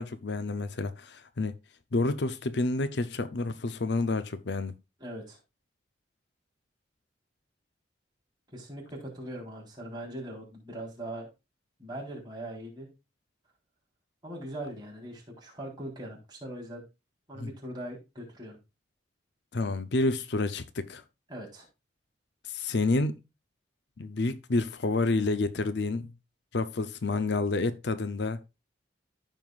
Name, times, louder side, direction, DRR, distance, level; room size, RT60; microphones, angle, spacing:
voice 1, 0.0-1.5 1.9-4.7 17.4-17.5 19.5-21.0 22.5-23.2 24.0-26.1 26.5-28.4, left 3 dB, 65° left, 0.6 m, -29 dB
voice 2, 5.0-5.4 8.5-11.3 11.8-12.9 14.2-16.8 17.3-18.6 21.3-21.7, right 1 dB, 25° right, 3.8 m, -40 dB
14.0 x 5.6 x 2.4 m
head